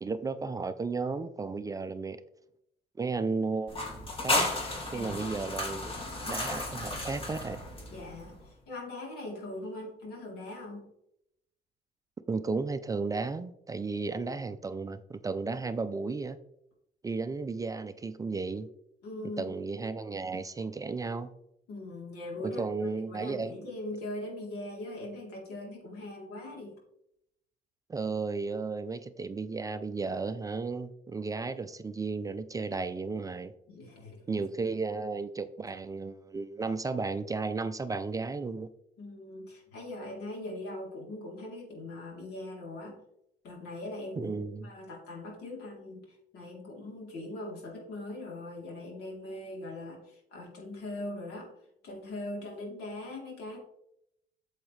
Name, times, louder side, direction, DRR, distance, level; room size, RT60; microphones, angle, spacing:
voice 1, 0.0-2.2 3.0-4.5 4.9-6.0 6.3-7.6 12.3-16.4 17.0-18.7 19.4-21.3 22.4-23.5 27.9-33.5 34.3-38.7 44.2-44.7, right 4 dB, 20° right, 11 dB, 0.4 m, -34 dB
sound 1, 3.7-8.3, left 2 dB, 35° left, 2.3 m, -33 dB
voice 2, 7.9-10.9 19.0-19.5 21.7-22.6 23.0-26.7 33.7-34.4 39.0-43.0 43.4-44.4 44.6-51.5 51.8-53.6, left 1 dB, 75° left, -1 dB, 3.3 m, -41 dB
8.7 x 7.2 x 3.2 m, 0.79 s
cardioid pair, 110°, 17 cm